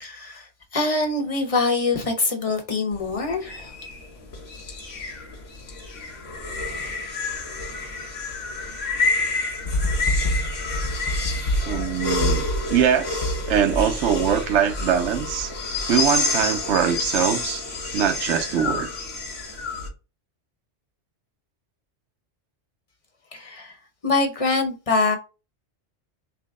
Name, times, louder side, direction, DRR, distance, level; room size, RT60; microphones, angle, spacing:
voice 1, 0.0-3.7 23.3-23.8 24.0-25.2, left 3 dB, 30° left, 0.9 m, -24 dB
sound 1, 2.9-19.9, left 2 dB, 90° left, 1.6 m, -27 dB
voice 2, 11.7-15.5 15.9-17.6 17.9-18.9, right 8 dB, 75° right, 0.9 m, -22 dB
6.0 x 2.1 x 3.6 m
omnidirectional pair, 1.2 m